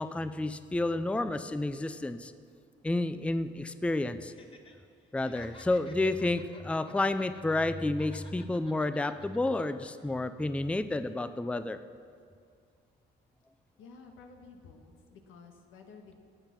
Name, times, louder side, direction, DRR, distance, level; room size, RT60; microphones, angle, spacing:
voice 1, 0.0-2.3 2.8-4.3 5.1-11.8, left 2 dB, 5° left, 11 dB, 0.5 m, -30 dB
Laughter, 4.2-4.7 5.0-7.7 8.0-9.6 10.0-10.1, left 3 dB, 25° left, 1.7 m, -55 dB
voice 2, 13.8-16.1, left 4 dB, 90° left, 3 dB, 1.6 m, -52 dB
15.5 x 8.8 x 6.0 m, 2.2 s
cardioid pair, 90°, 20 cm